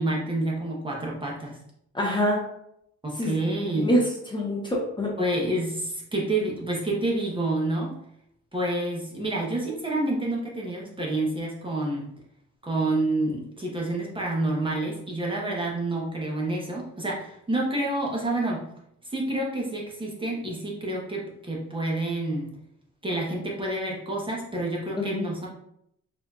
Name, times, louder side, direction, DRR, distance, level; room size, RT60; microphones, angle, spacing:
voice 1, 0.0-1.6 3.0-3.9 5.2-7.9 8.5-12.1 12.6-18.6 19.0-22.5 23.0-25.5, right 2 dB, 15° right, -3 dB, 1.0 m, -28 dB
voice 2, 1.9-2.5 3.2-3.4 3.8-5.2 25.0-25.2, equal, 15° left, -3 dB, 0.9 m, -25 dB
4.3 x 2.6 x 2.4 m, 0.74 s
cardioid pair, 90°, 30 cm